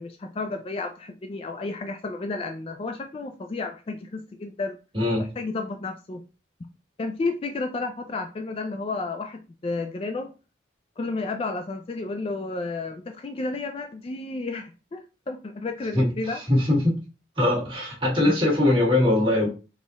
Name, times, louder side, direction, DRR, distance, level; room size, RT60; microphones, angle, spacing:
voice 1, 0.0-4.8 5.4-6.2 7.0-10.3 11.0-16.4 18.2-18.4, left 3 dB, 30° left, 5 dB, 0.3 m, -32 dB
voice 2, 4.9-5.3 15.9-16.9 17.4-19.5, left 1 dB, 25° right, -3 dB, 1.5 m, -21 dB
3.7 x 2.4 x 3.9 m, 0.32 s
head